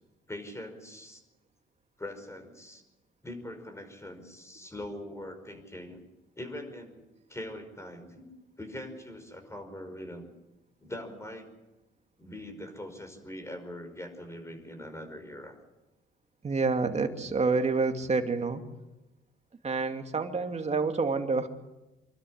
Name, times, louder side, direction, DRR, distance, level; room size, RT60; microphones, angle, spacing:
voice 1, 0.3-1.2 2.0-2.8 3.2-6.0 6.4-7.0 7.3-8.3 8.6-10.3 10.8-11.5 12.2-15.5, left 1 dB, 15° left, 6 dB, 5.3 m, -42 dB
voice 2, 16.4-18.6 19.6-21.5, right 4 dB, 35° right, 5 dB, 2.5 m, -28 dB
26.0 x 12.5 x 10.0 m, 1.0 s
cardioid pair, 90°, 20 cm